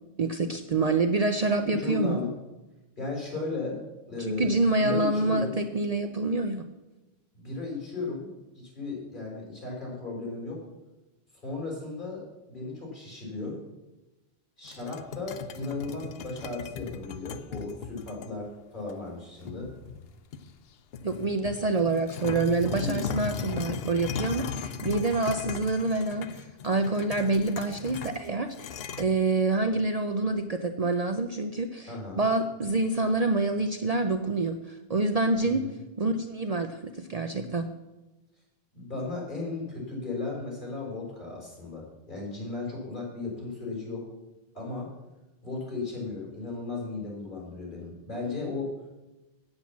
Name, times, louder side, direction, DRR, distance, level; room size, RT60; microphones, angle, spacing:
voice 1, 0.2-2.2 4.2-6.6 21.0-35.6 36.0-37.7, right 3 dB, 45° right, 7 dB, 0.6 m, -27 dB
voice 2, 1.7-2.3 3.0-3.8 4.1-4.5 4.8-5.6 7.3-8.3 8.5-10.6 11.4-13.6 14.6-19.7 22.8-23.1 31.9-32.2 35.5-35.7 38.7-44.0 44.5-44.9 45.4-48.7, left 3 dB, 50° left, -3 dB, 4.5 m, -35 dB
sound 1, 14.6-18.3 18.9-19.0 19.5-20.6 20.9-29.0, left 6 dB, 75° left, 0.9 m, -37 dB
8.7 x 8.0 x 7.2 m, 1.0 s
omnidirectional pair, 1.0 m